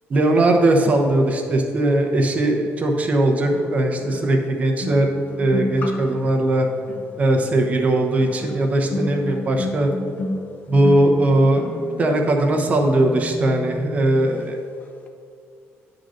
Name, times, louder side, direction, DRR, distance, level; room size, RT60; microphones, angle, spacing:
voice 1, 0.1-5.1 5.4-6.7 7.2-9.9 10.7-11.6 12.0-14.6, right 1 dB, 30° right, 2 dB, 0.8 m, -19 dB
sound 1, 2.0-2.1 3.4-14.5 14.8-15.1, left 2 dB, 35° left, 0.7 m, -32 dB
9.9 x 3.9 x 6.4 m, 2.3 s
cardioid pair, 160°, 5 cm